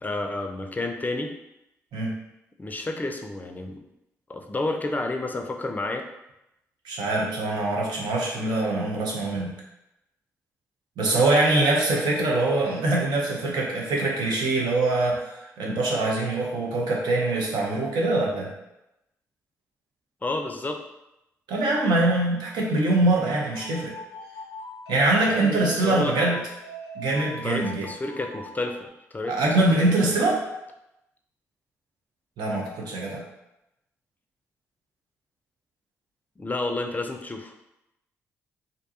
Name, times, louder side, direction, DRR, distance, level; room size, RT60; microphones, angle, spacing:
voice 1, 0.0-1.3 2.6-3.8 4.3-6.0 20.2-20.8 25.3-26.2 27.4-29.6 30.0-30.1 36.4-37.5, left 2 dB, 20° left, 4 dB, 0.4 m, -30 dB
voice 2, 6.8-9.6 11.0-18.5 21.5-23.9 24.9-26.4 27.0-27.9 29.3-30.4 32.4-33.2, right 2 dB, 70° right, -2 dB, 0.7 m, -23 dB
sound 1, 23.5-28.9, right 1 dB, 85° left, 0.4 m, -41 dB
2.5 x 2.3 x 2.7 m, 0.88 s
hypercardioid pair, 40°, 7 cm